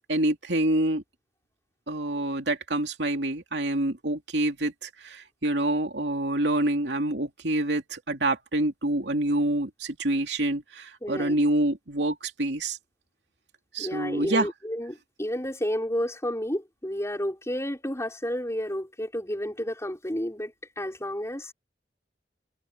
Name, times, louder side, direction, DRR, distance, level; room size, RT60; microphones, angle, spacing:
voice 1, 0.1-1.0 1.9-12.8 13.7-14.5, right 1 dB, 80° right, 2.7 m, -27 dB
voice 2, 11.0-11.4 13.8-21.5, equal, 15° left, 6.0 m, -31 dB
head